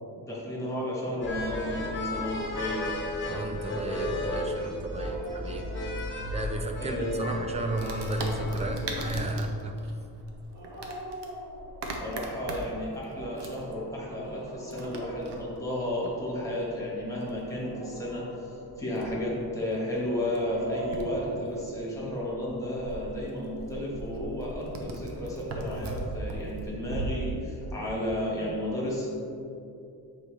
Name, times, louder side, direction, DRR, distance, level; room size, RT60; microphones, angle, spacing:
voice 1, 0.1-2.9 6.8-7.4 12.0-29.1, left 1 dB, 10° left, -6 dB, 1.4 m, -33 dB
sound 1, 1.2-9.2, left 1 dB, 30° left, 0.9 m, -34 dB
Dog, 2.0-2.7 4.7-6.1 8.2-9.0 10.5-12.0 12.9-16.1 17.4-18.8 20.1-21.4, right 1 dB, 50° right, 1.5 m, -44 dB
voice 2, 3.3-5.8 6.3-9.8, right 2 dB, 20° right, 4 dB, 0.3 m, -33 dB
Wood, 7.8-27.1, right 2 dB, 85° right, 0.8 m, -41 dB
6.8 x 4.6 x 3.3 m, 2.6 s
wide cardioid pair, 165°, 40 cm